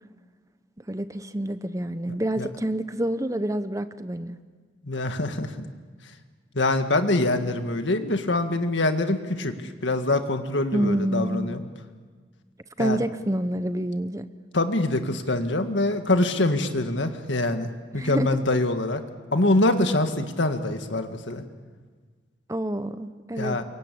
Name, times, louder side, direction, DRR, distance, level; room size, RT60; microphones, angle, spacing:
voice 1, 0.9-4.4 10.7-11.5 12.8-14.3 17.9-18.4 22.5-23.6, right 1 dB, 15° right, 11 dB, 0.8 m, -28 dB
voice 2, 4.8-5.7 6.5-11.6 12.8-13.0 14.5-19.0 19.3-21.4 23.4-23.6, left 2 dB, 80° left, 7 dB, 1.8 m, -24 dB
29.0 x 23.5 x 8.6 m, 1.5 s
head